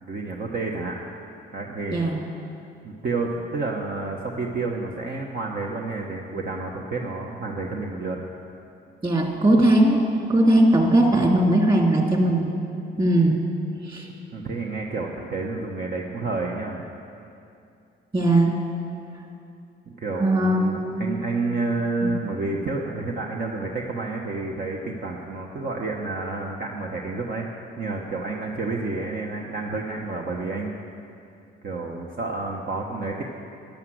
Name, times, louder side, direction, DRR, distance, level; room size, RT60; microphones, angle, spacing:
voice 1, 0.0-1.0 1.5-2.1 2.8-8.2 14.3-16.8 19.9-27.5 27.8-30.7 31.6-33.2, right 3 dB, 50° right, -1 dB, 1.2 m, -30 dB
voice 2, 1.9-2.2 9.0-10.0 10.3-12.5 13.0-13.4 13.8-14.1 18.1-18.5 20.2-21.1 22.0-22.1, right 1 dB, 25° right, 0 dB, 2.7 m, -19 dB
12.5 x 10.5 x 7.8 m, 2.6 s
cardioid pair, 90°, 20 cm